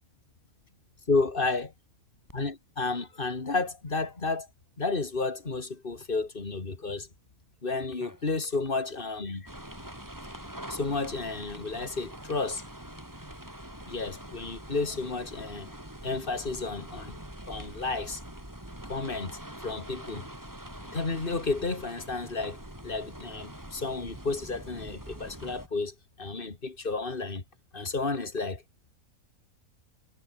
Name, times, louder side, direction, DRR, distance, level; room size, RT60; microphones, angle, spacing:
voice 1, 1.1-1.7 2.3-4.5 4.8-7.1 7.6-9.5 10.7-12.6 13.9-15.7 16.0-17.2 17.4-18.2 18.9-20.2 20.9-27.4 27.7-28.6, left 3 dB, 35° left, 2.6 m, -32 dB
Cat, 2.3-15.9, equal, 15° left, 8.1 m, -62 dB
sound 1, 9.5-25.7, right 1 dB, 10° right, 4.0 m, -44 dB
omnidirectional pair, 1.5 m